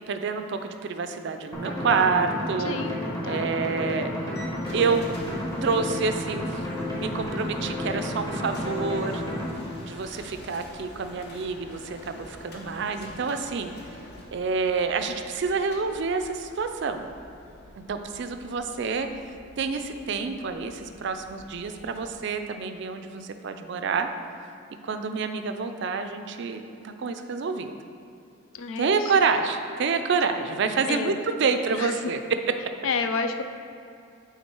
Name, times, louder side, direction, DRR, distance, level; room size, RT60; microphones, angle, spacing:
voice 1, 0.1-2.8 3.2-4.1 4.7-5.1 5.6-6.6 7.0-9.2 9.9-13.7 14.3-17.1 17.8-19.1 19.6-24.1 24.8-27.7 28.8-32.2, right 5 dB, 55° right, 7 dB, 0.4 m, -28 dB
sound 1, 1.5-9.5, left 1 dB, 15° left, 1.1 m, -31 dB
voice 2, 2.6-3.6 28.5-29.1 30.9-31.2 31.7-32.0 32.8-33.4, left 4 dB, 70° left, 8 dB, 0.4 m, -30 dB
sound 2, 4.3-22.2, left 1 dB, 50° left, 0.9 m, -46 dB
8.4 x 3.7 x 4.5 m, 2.5 s
head